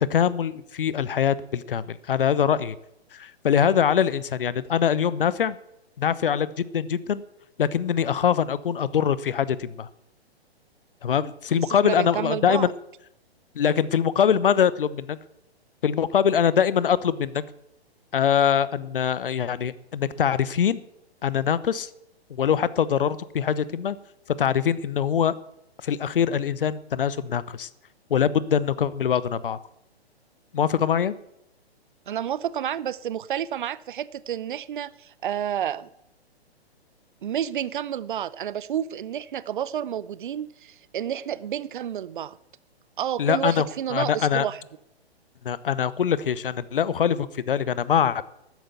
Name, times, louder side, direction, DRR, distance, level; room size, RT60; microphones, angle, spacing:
voice 1, 0.1-2.8 3.1-5.6 6.0-7.2 7.6-9.9 11.0-12.7 13.5-15.2 15.8-17.4 18.1-20.8 21.2-21.9 22.3-24.0 24.4-25.3 25.8-27.7 28.1-29.6 30.5-31.1 43.2-43.6 43.9-44.5 45.4-48.2, left 8 dB, 55° left, 0.9 m, -23 dB
voice 2, 11.5-12.7 32.1-35.9 37.2-42.4 43.0-44.6, right 10 dB, 50° right, 0.7 m, -30 dB
12.5 x 9.2 x 8.1 m
figure-of-eight pair, 120°, 32 cm